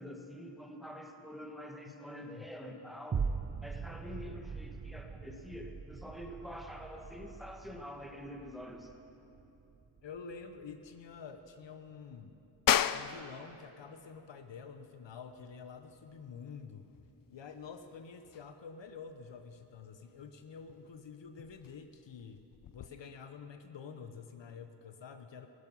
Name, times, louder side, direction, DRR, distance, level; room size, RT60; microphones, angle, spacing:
voice 1, 0.0-3.3 3.6-8.9, left 1 dB, ahead, 3 dB, 1.5 m, -46 dB
voice 2, 1.9-2.5 10.0-12.4 12.9-16.9 17.3-22.4 22.7-25.5, left 6 dB, 65° left, 7 dB, 0.9 m, -48 dB
sound 1, 3.1-11.7 12.1-12.2, right 5 dB, 30° right, 0.5 m, -42 dB
sound 2, 12.7-22.9, left 10 dB, 45° left, 0.5 m, -38 dB
15.5 x 11.5 x 5.5 m, 2.9 s
cardioid pair, 60°, 47 cm